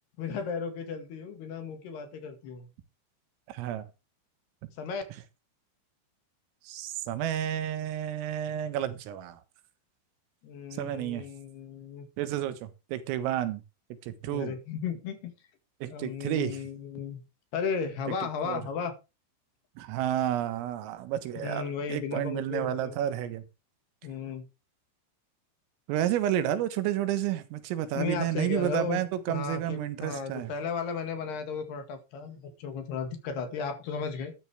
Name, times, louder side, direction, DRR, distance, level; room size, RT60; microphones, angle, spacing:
voice 1, 0.2-2.7 4.8-5.0 10.4-12.1 14.2-15.3 15.9-17.2 17.5-19.0 21.4-23.0 24.0-24.5 28.0-34.4, left 6 dB, 60° left, 3.5 m, -35 dB
voice 2, 3.5-3.9 6.6-9.4 10.7-11.3 12.2-13.6 14.0-14.5 15.8-16.6 18.4-18.6 19.8-23.4 25.9-30.5, right 11 dB, 85° right, 4.0 m, -31 dB
12.5 x 11.0 x 3.4 m
omnidirectional pair, 5.8 m